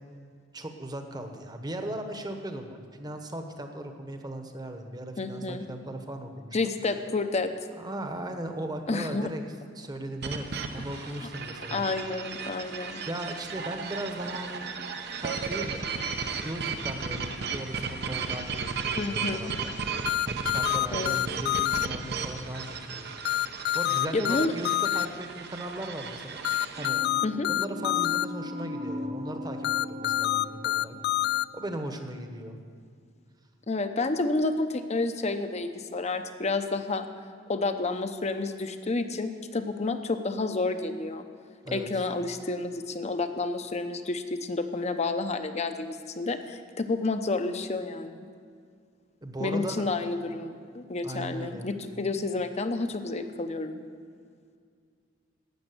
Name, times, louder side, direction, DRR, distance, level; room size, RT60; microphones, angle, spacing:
voice 1, 0.5-6.7 7.8-9.4 9.7-11.9 13.1-14.7 15.2-15.9 16.4-19.7 20.3-23.2 23.7-26.4 26.8-27.0 27.5-31.0 31.5-32.6 41.6-41.9 49.2-49.9 51.0-51.7, right 1 dB, 20° right, 5 dB, 1.1 m, -37 dB
voice 2, 5.2-5.6 6.5-7.5 8.9-9.3 11.7-13.0 19.0-19.5 20.9-21.2 24.1-24.5 27.2-27.5 33.7-37.1 37.5-41.2 41.7-48.3 49.4-53.8, left 3 dB, 35° left, 8 dB, 0.8 m, -30 dB
sound 1, 10.2-26.9, right 5 dB, 60° right, 0.8 m, -35 dB
sound 2, 20.0-21.9 23.2-25.1 26.4-28.2 29.6-31.4, left 14 dB, 60° left, 0.3 m, -26 dB
sound 3, 26.8-32.0, left 1 dB, 80° right, 1.6 m, -38 dB
12.5 x 8.6 x 7.8 m, 2.2 s
head